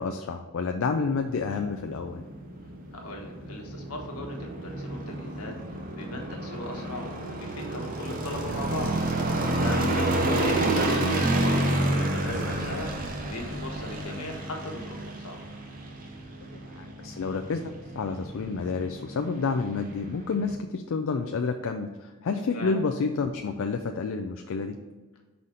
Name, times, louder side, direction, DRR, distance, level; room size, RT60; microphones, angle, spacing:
voice 1, 0.0-2.2 16.5-24.8, left 4 dB, 65° left, 5 dB, 0.4 m, -29 dB
sound 1, 1.2-20.5, right 1 dB, 40° right, 0.8 m, -30 dB
voice 2, 2.9-8.9 9.6-15.4 22.5-22.7, left 1 dB, 85° left, 1 dB, 1.3 m, -38 dB
sound 2, 8.2-14.1, right 1 dB, 55° right, 1.8 m, -41 dB
5.7 x 4.1 x 4.9 m, 1.3 s
head